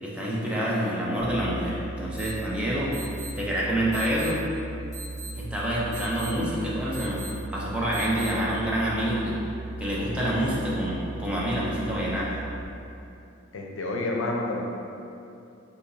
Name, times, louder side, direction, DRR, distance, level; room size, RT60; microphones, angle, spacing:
voice 1, 0.0-2.9 3.4-4.4 5.4-7.2 7.5-9.4 9.8-12.4, equal, 5° right, -6 dB, 0.6 m, -27 dB
sound 1, 1.2-12.6, right 3 dB, 85° right, 0.5 m, -37 dB
sound 2, 2.2-2.3 2.9-3.3 3.9-4.3 4.9-5.3 5.9-6.3 6.9-7.3 7.9-8.3, right 4 dB, 20° left, 1.4 m, -40 dB
voice 2, 13.5-14.7, left 2 dB, 85° left, -1 dB, 0.6 m, -29 dB
4.0 x 2.9 x 3.9 m, 2.7 s
head